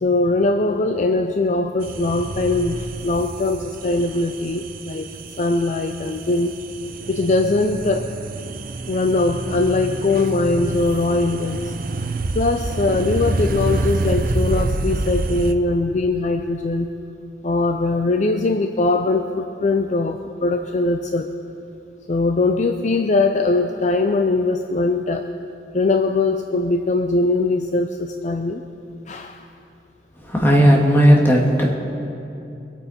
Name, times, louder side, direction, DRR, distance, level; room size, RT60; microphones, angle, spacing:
voice 1, 0.0-5.1 5.4-6.5 7.1-8.1 8.9-11.7 12.3-16.9 17.4-21.3 22.1-25.3 25.7-28.6 29.1-29.4, left 2 dB, 45° left, 6 dB, 0.5 m, -21 dB
sound 1, 1.8-15.5, right 2 dB, 55° right, 0.6 m, -27 dB
voice 2, 30.2-31.7, equal, 15° left, -2 dB, 2.1 m, -14 dB
23.5 x 8.9 x 4.3 m, 2.8 s
head